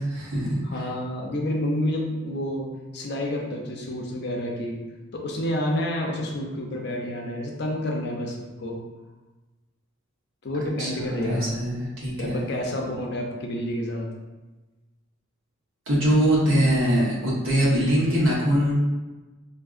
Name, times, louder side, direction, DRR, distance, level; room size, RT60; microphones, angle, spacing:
voice 1, 0.0-0.9 10.6-12.4 15.9-18.7, equal, 80° right, -6 dB, 1.1 m, -23 dB
voice 2, 0.7-2.7 2.9-4.8 5.1-8.8 10.4-11.5 12.2-14.1, left 1 dB, 50° left, 0 dB, 0.6 m, -29 dB
3.6 x 2.6 x 2.5 m, 1.2 s
head